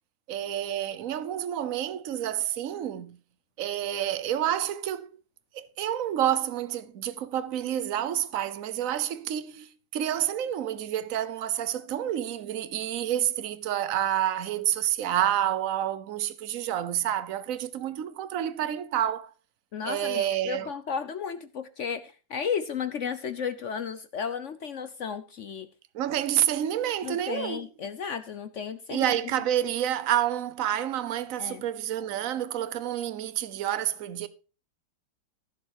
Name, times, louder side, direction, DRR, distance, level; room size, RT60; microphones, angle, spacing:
voice 1, 0.3-3.2 3.6-5.1 5.5-19.3 19.8-20.7 25.9-27.7 28.9-34.3, right 11 dB, 55° right, 1.1 m, -29 dB
voice 2, 19.7-25.7 27.0-29.1 31.4-31.6, left 6 dB, 60° left, 0.8 m, -34 dB
15.0 x 7.2 x 4.8 m
omnidirectional pair, 2.0 m